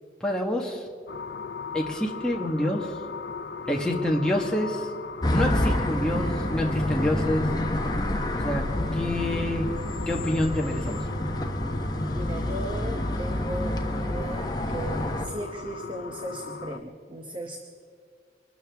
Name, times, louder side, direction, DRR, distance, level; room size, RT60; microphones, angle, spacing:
voice 1, 0.2-0.8 1.7-3.0 3.7-4.9 5.3-7.5 8.3-8.6 8.9-9.7 10.1-11.0, left 1 dB, 5° left, -1 dB, 1.4 m, -27 dB
sound 1, 1.1-16.8, left 5 dB, 70° left, 0.6 m, -38 dB
sound 2, 5.2-15.3, left 1 dB, 25° left, 1.1 m, -28 dB
voice 2, 12.1-17.6, right 1 dB, 30° right, 3 dB, 1.0 m, -37 dB
25.0 x 13.0 x 3.5 m, 2.3 s
head